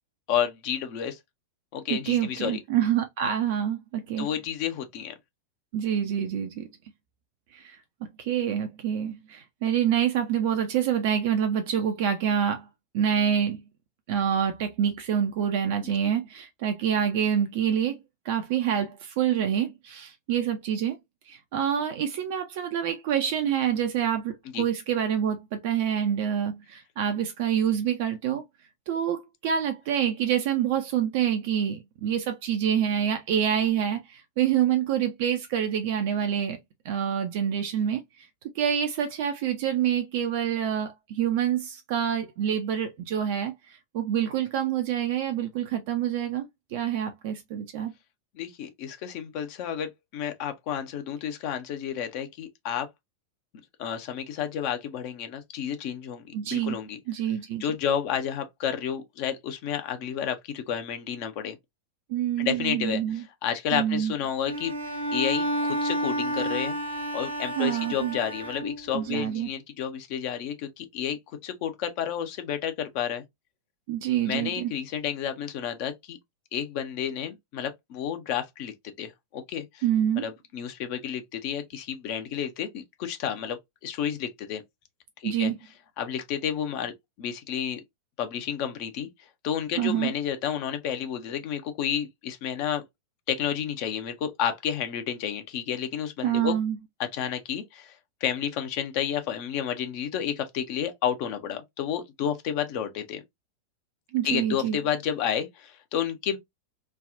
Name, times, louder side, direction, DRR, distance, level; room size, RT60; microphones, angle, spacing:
voice 1, 0.3-1.2 1.7-2.6 4.2-5.1 24.5-24.7 48.3-52.9 53.8-57.0 57.6-61.6 62.4-64.7 65.1-66.8 67.1-73.2 74.3-76.2 76.5-78.7 79.0-79.8 80.2-84.6 85.2-85.5 86.0-86.9 87.2-87.8 88.2-89.1 89.4-92.8 93.3-96.5 97.1-97.9 98.2-103.2 104.2-106.4, left 9 dB, 45° left, 0.7 m, -31 dB
voice 2, 1.9-4.3 5.7-6.7 7.5-7.8 8.2-12.7 12.9-13.6 14.1-18.0 18.2-21.0 21.3-28.4 28.9-36.6 36.8-38.3 38.5-47.9 56.3-56.8 57.1-57.7 62.1-63.2 63.7-64.1 67.6-68.2 68.9-69.5 73.9-74.7 79.8-80.3 85.2-85.6 89.7-90.1 96.2-96.8 104.1-104.8, right 9 dB, 50° right, 0.5 m, -27 dB
Bowed string instrument, 64.5-69.1, right 1 dB, 80° right, 0.9 m, -30 dB
3.3 x 2.3 x 2.5 m
figure-of-eight pair, 90°, 0 cm